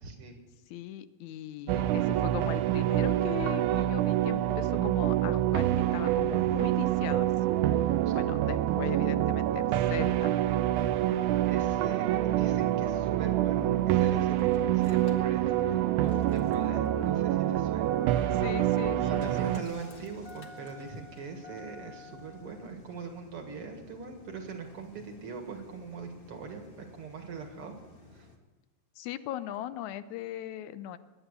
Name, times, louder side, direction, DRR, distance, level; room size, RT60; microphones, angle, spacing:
voice 1, 0.0-0.4 8.1-8.2 11.4-18.4 19.0-27.8 28.1-28.3, right 5 dB, 55° right, 4 dB, 2.4 m, -42 dB
voice 2, 0.7-7.3 7.8-10.4 18.3-19.7 29.0-31.0, left 12 dB, 80° left, 14 dB, 2.0 m, -39 dB
sound 1, 1.7-19.6, right 13 dB, 85° right, 2.1 m, -26 dB
Engine starting, 13.2-28.4, left 3 dB, 30° left, 1.1 m, -51 dB
20.5 x 9.0 x 6.6 m, 1.2 s
omnidirectional pair, 3.4 m